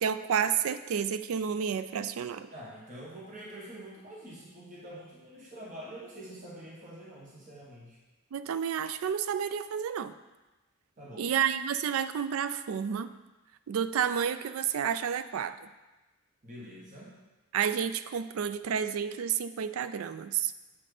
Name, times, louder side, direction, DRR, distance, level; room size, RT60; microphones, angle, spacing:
voice 1, 0.0-2.5 8.3-10.1 11.2-13.1 13.7-15.5 17.5-20.5, right 8 dB, 80° right, 12 dB, 0.4 m, -30 dB
voice 2, 2.5-8.0 11.0-11.3 16.4-17.1, right 1 dB, 35° right, -5 dB, 1.3 m, -46 dB
7.4 x 4.2 x 4.9 m, 1.1 s
head